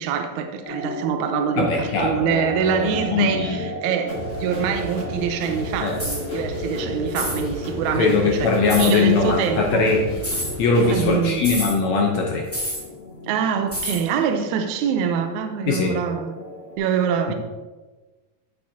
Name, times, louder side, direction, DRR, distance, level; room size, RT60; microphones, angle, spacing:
voice 1, 0.0-8.5 8.8-9.9 10.8-11.5 13.2-16.3 16.8-17.3, right 7 dB, 85° right, 1.7 m, -25 dB
sound 1, 0.6-16.8, left 2 dB, 50° left, 1.7 m, -35 dB
voice 2, 1.6-3.6 5.8-5.9 7.9-10.1 10.6-12.4 15.7-15.9 17.3-17.4, left 4 dB, 75° left, 1.7 m, -21 dB
sound 2, 4.1-11.2, right 1 dB, 25° left, 1.7 m, -34 dB
sound 3, 5.9-6.2 7.1-7.4 8.7-8.9 10.2-10.5 11.4-11.7 12.5-12.8 13.7-14.0, equal, 5° left, 1.4 m, -28 dB
9.4 x 7.8 x 2.8 m
omnidirectional pair, 4.0 m